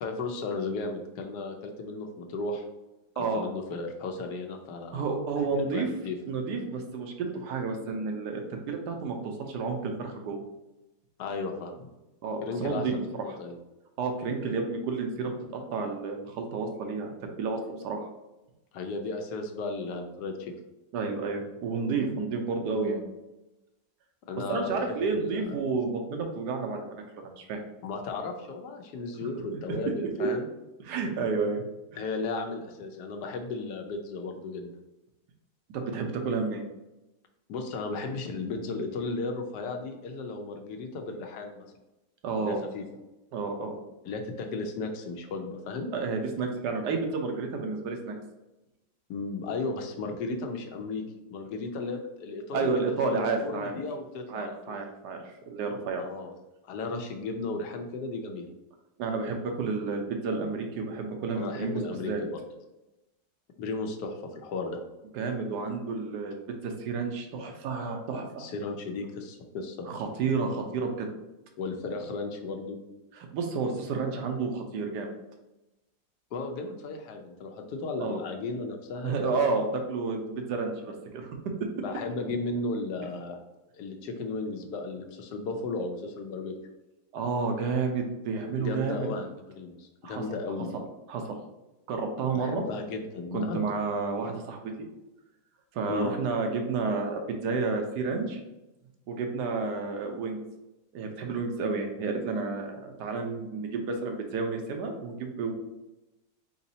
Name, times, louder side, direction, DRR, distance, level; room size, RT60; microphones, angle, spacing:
voice 1, 0.0-2.6 3.2-5.0 5.4-5.5 5.7-6.2 11.2-11.9 12.4-13.6 18.7-20.5 24.3-25.6 27.8-30.5 32.0-34.7 37.5-41.6 42.4-42.8 44.0-45.9 49.1-52.8 53.1-54.8 56.0-56.3 56.6-58.5 61.3-62.4 63.6-64.8 68.4-69.9 71.6-72.8 76.3-79.2 81.8-83.4 83.7-86.6 88.6-90.7 92.3-93.6 95.9-96.1, left 3 dB, 80° left, 4 dB, 1.3 m, -35 dB
voice 2, 4.9-5.9 6.3-10.4 12.2-13.0 13.3-13.4 14.0-18.1 20.9-23.0 24.5-26.9 27.2-27.6 29.2-29.3 30.2-30.3 30.8-31.6 35.7-36.6 42.2-42.6 43.3-43.8 45.9-48.2 52.5-53.7 54.3-56.0 59.0-62.2 65.1-68.5 69.8-71.1 73.1-75.1 78.0-78.2 79.0-81.3 87.1-89.1 90.0-90.2 91.1-91.4 91.9-92.6 93.3-94.9 95.7-98.4 99.1-100.4 100.9-105.5, right 4 dB, 90° right, 3 dB, 1.3 m, -31 dB
4.4 x 4.0 x 2.7 m, 0.99 s
omnidirectional pair, 1.7 m